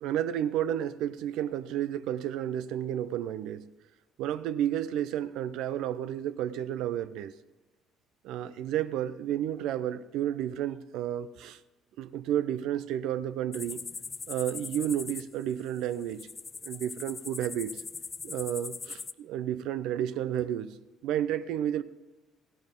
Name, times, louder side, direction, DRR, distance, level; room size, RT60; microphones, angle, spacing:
voice 1, 0.0-3.7 4.2-7.3 8.2-11.6 12.0-13.8 14.3-16.3 16.6-17.8 18.2-20.7 21.0-21.8, right 11 dB, 65° right, 0.5 m, -31 dB
sound 1, 13.5-19.1, left 4 dB, 35° left, 0.4 m, -41 dB
15.5 x 11.5 x 3.7 m
hypercardioid pair, 50°, 0 cm